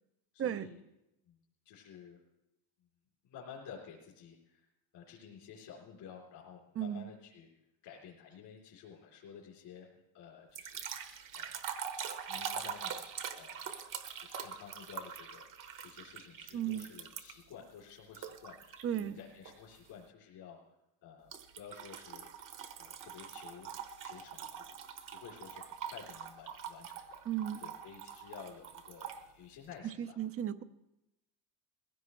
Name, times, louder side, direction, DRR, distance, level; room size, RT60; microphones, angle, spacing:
voice 1, 0.3-0.8 1.3-1.4 1.7-2.2 3.2-4.7 4.9-7.5 7.8-9.9 10.1-11.6 12.0-13.0 13.3-13.6 14.2-20.8 21.0-21.3 21.6-22.3 22.8-23.7 24.0-24.6 25.1-27.2 27.6-30.2, left 7 dB, 75° left, -5 dB, 3.5 m, -52 dB
voice 2, 6.8-7.1 16.5-16.9 18.8-19.2 27.3-27.6 29.8-30.6, right 10 dB, 35° right, 12 dB, 0.6 m, -35 dB
sound 1, 10.5-17.5 18.1-19.0 19.5-19.8 21.3-29.2, right 7 dB, 50° right, 1.2 m, -44 dB
20.5 x 16.0 x 3.2 m, 0.91 s
cardioid pair, 140°, 41 cm